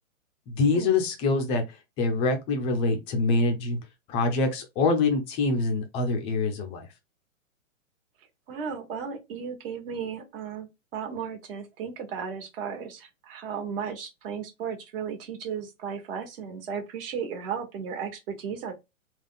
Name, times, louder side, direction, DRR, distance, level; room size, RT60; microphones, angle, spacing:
voice 1, 0.5-1.6 2.0-3.8 4.1-6.9, left 3 dB, 15° left, 0.5 m, -25 dB
voice 2, 8.5-18.7, right 7 dB, 45° right, 1.5 m, -35 dB
3.6 x 2.4 x 3.9 m
hypercardioid pair, 150°, 40 cm